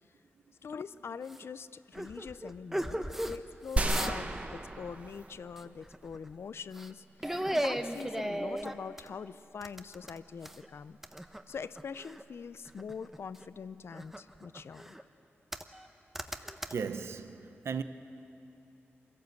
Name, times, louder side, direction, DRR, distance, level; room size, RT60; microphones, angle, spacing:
voice 1, 0.6-11.0 11.5-15.0, left 6 dB, 70° left, 0.5 m, -43 dB
sound 1, 1.3-1.5 1.9-3.4 3.7-4.4 4.6-4.9 5.6-6.3 6.7-6.9 7.2-9.1 9.6-10.7 11.0-12.2 12.7-13.5 13.9-15.0 15.5-15.9 16.2-16.7, right 1 dB, 5° right, 0.8 m, -36 dB
sound 2, 3.8-5.7 6.0-6.1, right 2 dB, 30° right, 1.1 m, -33 dB
voice 2, 16.7-17.8, right 6 dB, 75° right, 0.8 m, -36 dB
25.0 x 16.5 x 8.0 m
wide cardioid pair, 115°, 4 cm